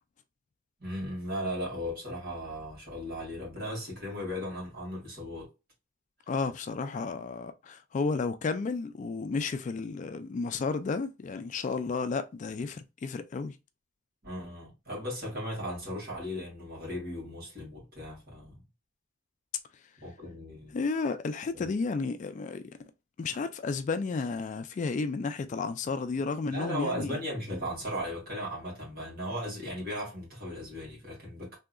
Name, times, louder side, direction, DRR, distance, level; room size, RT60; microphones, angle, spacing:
voice 1, 0.8-5.5 14.2-18.6 20.0-20.8 26.5-31.6, equal, 50° right, 2.1 m, -37 dB
voice 2, 6.3-13.6 20.7-22.6 23.2-27.2, left 4 dB, 40° left, 0.3 m, -32 dB
3.6 x 2.8 x 2.3 m
head